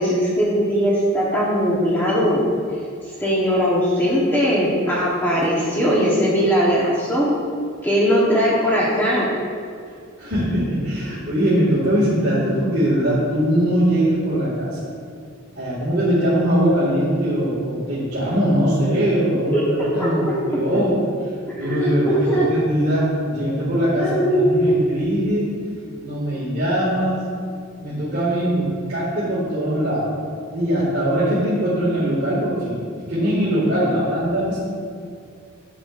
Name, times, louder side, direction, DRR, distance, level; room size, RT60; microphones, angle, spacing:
voice 1, 0.0-2.4 3.2-7.3 7.8-9.3 19.5-20.4 21.5-22.5 24.0-24.9, equal, 10° left, -7 dB, 1.1 m, -20 dB
voice 2, 10.2-14.8 15.6-21.0 21.6-25.5 26.0-27.3 27.8-30.1 30.5-32.8 33.1-34.6, equal, 50° right, -10 dB, 2.1 m, -21 dB
11.5 x 7.0 x 2.6 m, 2.2 s
head